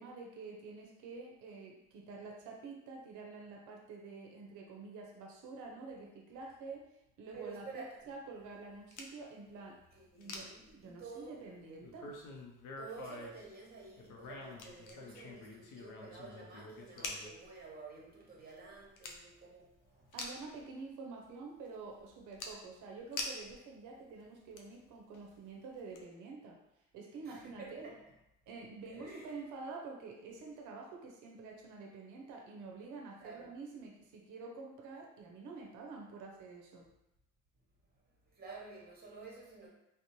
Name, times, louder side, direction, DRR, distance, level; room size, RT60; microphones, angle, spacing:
voice 1, 0.0-6.8 7.2-9.8 10.2-12.1 20.1-26.6 26.9-27.9 28.5-36.9, right 4 dB, 85° right, 0 dB, 0.5 m, -48 dB
voice 2, 7.3-8.1 9.9-11.4 12.8-20.2 27.2-28.0 28.9-29.5 33.2-33.6 37.9-39.7, right 4 dB, 30° right, -3 dB, 0.9 m, -51 dB
sound 1, 8.3-9.1 9.8-9.9 10.2-11.2 11.8-13.6 14.0-17.6 18.0-18.1 18.5-19.2 19.5-19.7 20.1-20.6 21.3-21.4 21.7-23.7 24.1-24.8 25.1-25.4 25.9-26.0, left 3 dB, 85° left, 0.5 m, -46 dB
2.6 x 2.0 x 2.9 m, 0.87 s
cardioid pair, 90°, 30 cm